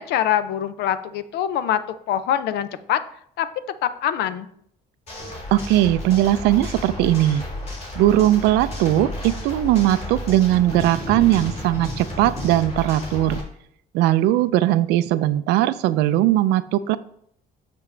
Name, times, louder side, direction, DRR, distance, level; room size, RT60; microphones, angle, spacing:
voice 1, 0.0-1.8 2.1-3.0 3.4-3.5 3.8-4.5, left 10 dB, 75° left, 13 dB, 0.6 m, -23 dB
sound 1, 5.1-13.4, left 1 dB, 40° left, 3.3 m, -32 dB
voice 2, 5.5-7.4 8.0-13.4 13.9-17.0, right 14 dB, 90° right, 15 dB, 0.4 m, -19 dB
7.0 x 6.6 x 3.3 m, 0.66 s
cardioid pair, 110°, 17 cm